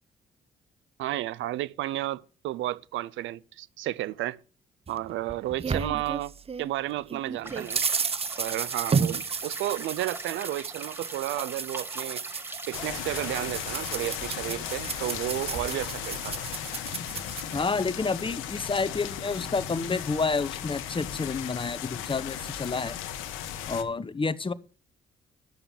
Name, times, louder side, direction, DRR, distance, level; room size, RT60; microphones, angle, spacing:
voice 1, 1.0-4.4 4.9-6.3 6.6-7.8 8.4-12.2 12.7-16.5, right 15 dB, 75° right, 0.6 m, -32 dB
sound 1, 4.9-6.7 7.1-17.6, right 5 dB, 30° right, 0.7 m, -33 dB
sound 2, 7.4-13.5, right 1 dB, 10° right, 4.8 m, -43 dB
sound 3, 12.7-23.8, left 10 dB, 90° left, 1.2 m, -36 dB
voice 2, 17.5-23.0 23.7-24.5, left 4 dB, 25° left, 1.0 m, -29 dB
12.0 x 6.9 x 7.3 m
supercardioid pair, 60°, 20 cm